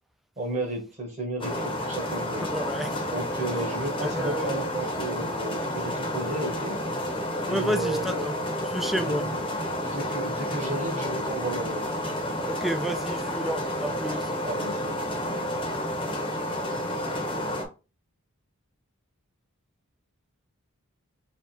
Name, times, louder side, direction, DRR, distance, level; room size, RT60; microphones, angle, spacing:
voice 1, 0.4-2.5 3.1-6.8 7.4-8.3 8.9-9.4 9.8-12.1 14.4-15.0, right 1 dB, 35° right, 1.4 m, -33 dB
sound 1, 1.4-17.6, left 1 dB, 25° left, 0.8 m, -30 dB
voice 2, 2.5-3.0 4.0-4.5 7.5-8.3 8.7-9.3 12.5-14.3, equal, ahead, 0.3 m, -30 dB
3.4 x 2.4 x 4.2 m
head